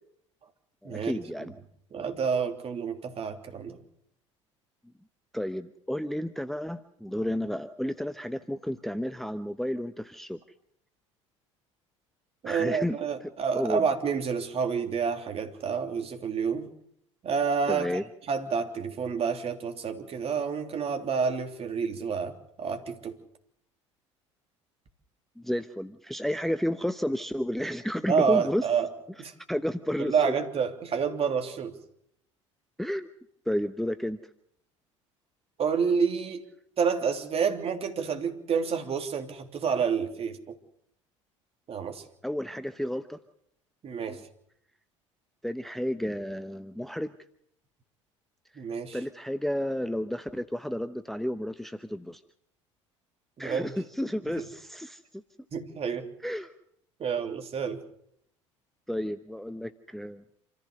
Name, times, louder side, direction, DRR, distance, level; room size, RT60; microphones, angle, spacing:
voice 1, 0.8-1.5 5.3-10.4 12.4-13.0 13.5-13.8 17.7-18.0 25.4-28.6 29.5-30.4 32.8-33.1 33.5-34.2 42.2-43.2 44.1-44.2 45.4-47.1 48.9-52.2 53.4-55.0 56.2-56.5 58.9-60.2, equal, ahead, 11 dB, 0.9 m, -31 dB
voice 2, 1.9-3.8 12.4-16.7 17.2-17.9 18.3-23.2 28.1-28.9 29.2-29.3 30.0-31.8 35.6-36.4 36.8-40.5 41.7-42.0 43.8-44.2 48.5-49.0 53.4-53.7 54.4-54.5 55.5-56.1 57.0-57.8, right 6 dB, 40° right, 6 dB, 3.2 m, -29 dB
27.5 x 15.0 x 6.8 m, 0.72 s
figure-of-eight pair, 65°, 16 cm